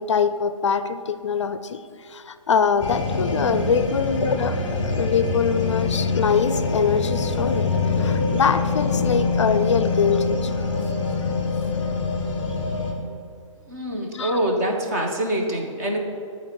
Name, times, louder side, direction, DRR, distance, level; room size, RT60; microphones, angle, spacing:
voice 1, 0.0-10.6 14.1-14.4, left 6 dB, 60° left, 12 dB, 0.4 m, -23 dB
sound 1, 2.8-12.9, left 4 dB, 15° left, 0.9 m, -24 dB
voice 2, 13.7-16.0, right 1 dB, 30° right, 1 dB, 1.0 m, -25 dB
10.5 x 4.3 x 5.9 m, 2.3 s
hypercardioid pair, 165°, 17 cm